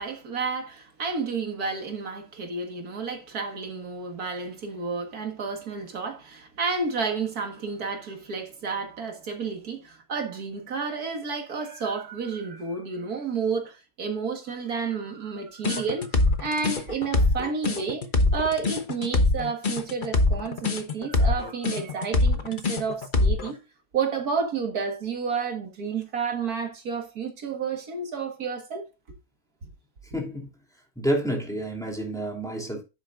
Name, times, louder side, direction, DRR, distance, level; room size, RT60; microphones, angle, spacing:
voice 1, 0.0-18.1 18.3-23.6 23.9-28.9, right 5 dB, 75° right, 2.2 m, -31 dB
sound 1, 15.6-23.5, left 2 dB, 35° left, 1.1 m, -23 dB
voice 2, 30.1-30.5 31.0-32.8, right 1 dB, ahead, 2.9 m, -29 dB
10.5 x 8.0 x 2.5 m
omnidirectional pair, 1.6 m